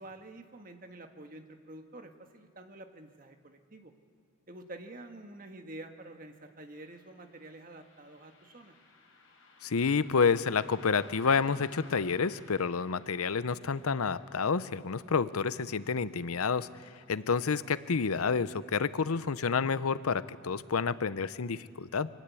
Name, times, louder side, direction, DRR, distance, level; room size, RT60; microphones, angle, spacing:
voice 1, 0.0-3.9 4.5-8.8, right 2 dB, 40° right, 5 dB, 1.5 m, -48 dB
Car passing by, 6.7-17.5 17.8-17.9 18.8-19.0 19.5-19.6 20.1-20.2, left 3 dB, 70° left, 4.9 m, -58 dB
voice 2, 9.6-22.1, left 5 dB, 90° left, 15 dB, 0.7 m, -29 dB
24.0 x 18.5 x 8.4 m, 2.3 s
head